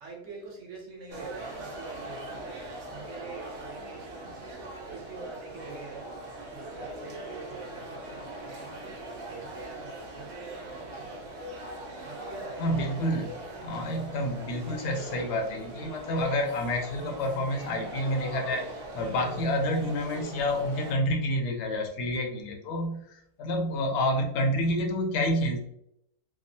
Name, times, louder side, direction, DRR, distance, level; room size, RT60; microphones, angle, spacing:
voice 1, 0.0-4.5 4.9-6.1 6.5-8.8 9.2-11.2 12.0-13.4, right 4 dB, 55° right, -2 dB, 1.0 m, -45 dB
sound 1, 1.1-20.9, right 1 dB, 80° right, 1.2 m, -41 dB
voice 2, 12.6-13.3 13.6-18.6 18.9-25.7, left 1 dB, 80° left, 3 dB, 1.2 m, -29 dB
3.5 x 2.0 x 2.6 m, 0.77 s
omnidirectional pair, 1.7 m